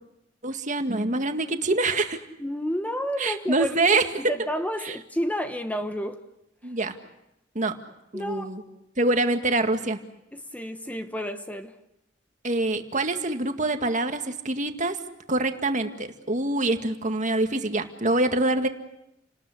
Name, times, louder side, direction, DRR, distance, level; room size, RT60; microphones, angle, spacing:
voice 1, 0.4-2.2 3.2-4.0 4.8-4.9 6.6-6.9 7.6-7.7 8.1-8.6 9.0-10.0 12.4-15.0 15.3-18.7, right 2 dB, 45° right, 1.9 m, -25 dB
voice 2, 2.4-3.7 4.3-6.2 8.1-8.5 10.3-11.7, equal, 10° left, 1.2 m, -30 dB
30.0 x 19.5 x 8.5 m
head